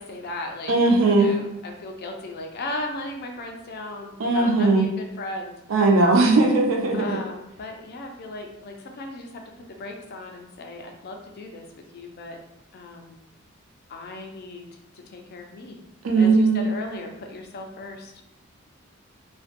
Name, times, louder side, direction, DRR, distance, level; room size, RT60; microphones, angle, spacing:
voice 1, 0.0-0.8 1.1-5.6 6.9-9.4 9.7-11.7 11.9-12.4 12.7-13.2 13.9-14.7 14.9-15.8 16.2-18.1, left 2 dB, 50° left, 3 dB, 0.4 m, -36 dB
voice 2, 0.7-1.3 4.2-4.9 5.7-7.2 16.0-16.7, right 3 dB, 70° right, 3 dB, 0.4 m, -18 dB
2.5 x 2.2 x 2.5 m, 0.89 s
head